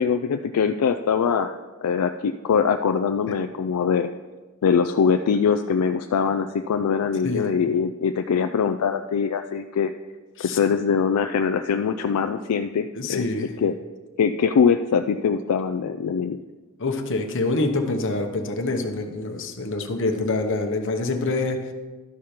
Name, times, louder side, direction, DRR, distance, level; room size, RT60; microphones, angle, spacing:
voice 1, 0.0-4.1 4.6-9.9 10.4-13.2 13.6-13.7 14.2-16.4, left 6 dB, 80° left, 7 dB, 0.4 m, -22 dB
voice 2, 12.9-13.5 16.8-21.7, left 2 dB, 55° left, 5 dB, 1.0 m, -26 dB
12.5 x 5.0 x 4.4 m, 1.3 s
head